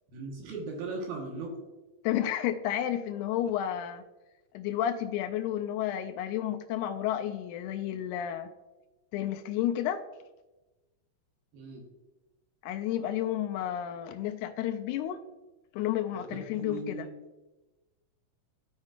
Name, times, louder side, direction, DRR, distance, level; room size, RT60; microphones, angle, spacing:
voice 1, 0.1-1.6 11.5-11.8 16.1-17.1, right 3 dB, 85° right, 0 dB, 3.1 m, -38 dB
voice 2, 2.0-4.0 4.5-8.5 9.1-10.0 12.6-15.2 15.7-17.1, left 11 dB, 90° left, 7 dB, 1.7 m, -31 dB
14.5 x 5.2 x 2.4 m, 1.1 s
omnidirectional pair, 4.1 m